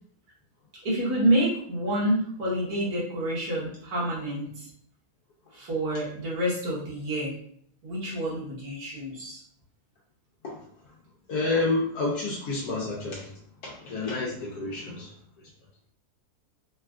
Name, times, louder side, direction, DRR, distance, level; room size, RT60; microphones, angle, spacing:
voice 1, 0.8-4.7 5.5-7.4 7.8-9.4, right 1 dB, 75° right, -6 dB, 1.7 m, -28 dB
voice 2, 11.3-13.3 13.6-15.1, left 3 dB, 80° left, -4 dB, 1.2 m, -29 dB
4.0 x 2.3 x 2.3 m, 0.64 s
omnidirectional pair, 1.6 m